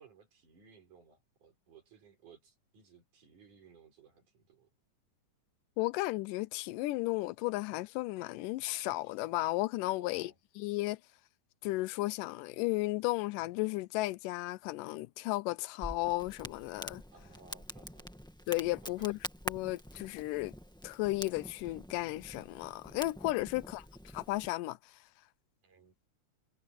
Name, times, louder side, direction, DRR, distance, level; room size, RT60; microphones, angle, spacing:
voice 1, 0.0-4.7 10.0-10.4 17.1-18.1 18.8-19.2 23.5-23.8 25.6-26.0, right 5 dB, 65° right, 6.6 m, -60 dB
voice 2, 5.8-10.3 10.6-11.0 11.6-17.0 18.5-19.2 19.5-20.5 20.8-23.9 24.1-24.8, left 19 dB, 85° left, 2.2 m, -34 dB
Crackle, 15.8-24.5, equal, 5° left, 0.7 m, -46 dB
omnidirectional pair, 3.8 m